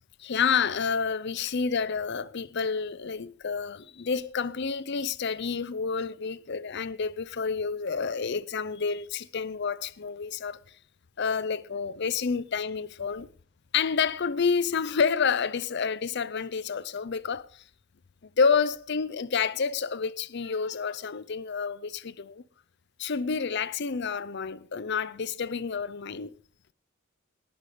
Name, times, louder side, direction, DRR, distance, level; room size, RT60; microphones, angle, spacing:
voice 1, 0.2-10.6 11.2-13.3 13.7-17.6 18.4-22.4 23.0-26.3, left 5 dB, 55° left, 0.6 m, -29 dB
19.5 x 6.7 x 5.0 m
head